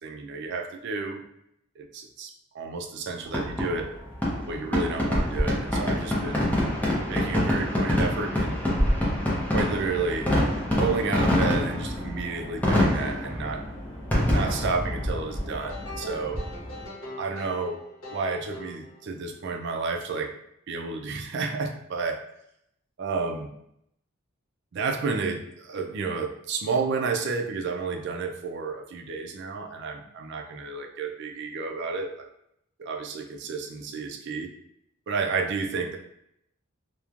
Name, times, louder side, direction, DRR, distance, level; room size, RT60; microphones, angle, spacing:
voice 1, 0.0-1.2 1.8-3.9 4.5-6.5 7.1-8.6 9.5-10.4 10.7-13.7 14.3-16.4 17.2-17.8 18.1-20.3 20.7-22.2 23.0-23.5 24.7-32.3 32.8-34.5 35.1-36.0, right 4 dB, 55° right, 3 dB, 0.4 m, -31 dB
Fireworks, 3.3-16.8, left 1 dB, 10° left, 0.6 m, -26 dB
sound 1, 15.6-19.4, left 2 dB, 75° left, 0.8 m, -41 dB
3.0 x 2.1 x 2.4 m, 0.75 s
head